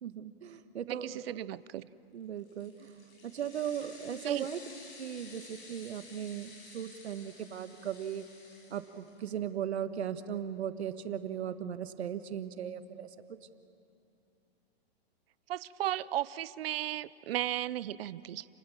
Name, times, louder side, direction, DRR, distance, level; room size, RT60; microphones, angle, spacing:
voice 1, 0.0-1.2 2.1-3.0 3.2-4.6 5.0-8.2 8.7-13.1, right 9 dB, 80° right, 10 dB, 1.6 m, -37 dB
voice 2, 0.9-1.9 4.3-4.5 15.5-18.5, right 13 dB, 65° right, 18 dB, 0.7 m, -35 dB
sound 1, 2.4-9.4, left 3 dB, 45° left, 6.3 m, -53 dB
30.0 x 20.0 x 7.3 m, 2.5 s
hypercardioid pair, 145°, 32 cm